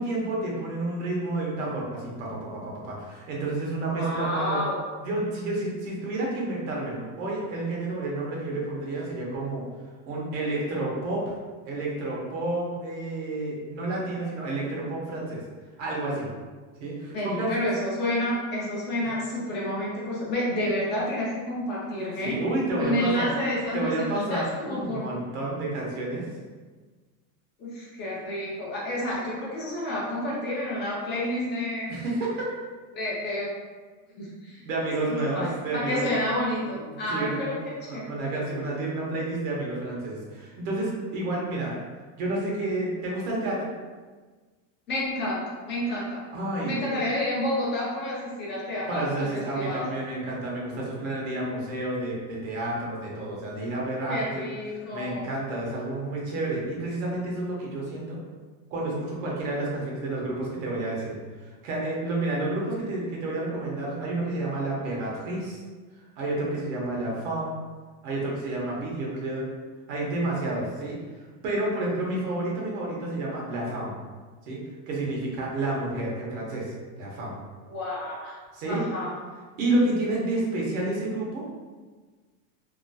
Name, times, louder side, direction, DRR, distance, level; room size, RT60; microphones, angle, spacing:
voice 1, 0.0-4.6 5.0-9.6 10.1-11.3 11.7-15.4 15.8-16.3 16.8-17.5 22.2-23.3 23.7-26.2 31.9-32.5 34.6-36.0 36.6-37.5 37.8-41.8 42.2-43.7 46.3-47.0 48.9-54.4 54.9-58.2 58.7-61.2 61.6-65.6 66.2-67.6 68.0-69.5 69.9-71.0 71.4-73.9 74.5-74.6 74.9-77.4 78.5-78.8 79.6-81.4, right 2 dB, 80° right, -3 dB, 1.1 m, -30 dB
voice 2, 3.9-4.8 17.1-22.4 22.8-25.1 27.6-31.9 32.9-33.5 34.2-34.7 35.1-37.6 37.9-38.1 44.9-45.4 45.7-46.2 46.6-49.8 54.1-55.3 77.6-78.4 78.6-79.1, left 1 dB, 25° left, -6 dB, 0.5 m, -29 dB
2.9 x 2.3 x 2.6 m, 1.4 s
supercardioid pair, 165°, 40 cm